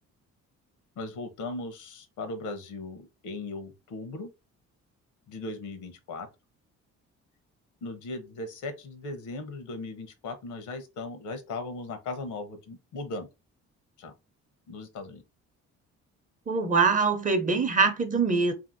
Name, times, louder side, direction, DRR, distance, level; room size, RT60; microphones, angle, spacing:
voice 1, 1.0-4.3 5.3-6.3 7.8-13.3 14.0-14.1 14.7-15.2, left 2 dB, 80° left, 0.8 m, -38 dB
voice 2, 16.5-18.5, right 4 dB, 25° right, 0.6 m, -23 dB
2.8 x 2.7 x 2.6 m
cardioid pair, 90°, 30 cm